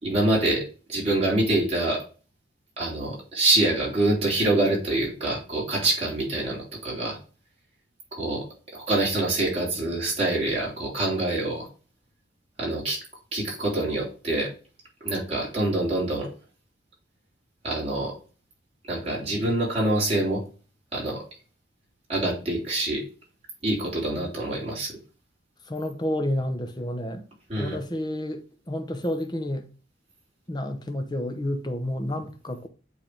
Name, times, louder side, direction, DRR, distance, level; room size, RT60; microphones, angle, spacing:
voice 1, 0.0-2.0 2.8-7.2 8.1-8.4 8.7-11.7 12.6-13.0 13.3-14.5 15.0-16.3 17.6-18.1 18.9-20.4 20.9-21.2 22.1-23.0 23.6-24.9 27.5-27.8, right 2 dB, 30° right, 3.5 m, -25 dB
voice 2, 25.7-27.2 27.6-28.4 28.7-29.7 30.5-32.7, left 1 dB, 20° left, 0.8 m, -30 dB
8.7 x 3.5 x 3.3 m
head